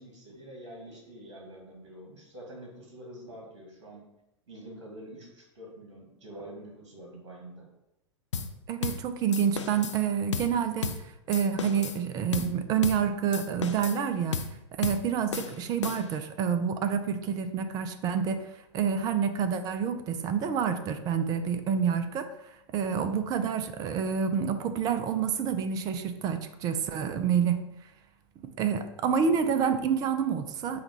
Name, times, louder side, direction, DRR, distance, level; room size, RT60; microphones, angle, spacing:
voice 1, 0.0-4.0 4.5-7.7 29.0-29.4, right 1 dB, 60° right, -1 dB, 1.5 m, -46 dB
sound 1, 8.3-8.5 8.8-9.0 9.3-10.0 10.3-10.5 10.8-11.0 11.3-12.0 12.3-12.5 12.8-13.0 13.3-14.0 14.3-14.5 14.8-15.0 15.3-16.2, left 5 dB, 70° left, 0.4 m, -34 dB
voice 2, 8.7-10.9 11.3-14.4 14.8-22.3 22.7-27.6 28.4-30.8, right 7 dB, 25° right, 9 dB, 0.4 m, -28 dB
5.7 x 2.3 x 4.0 m, 0.88 s
figure-of-eight pair, 95°, 16 cm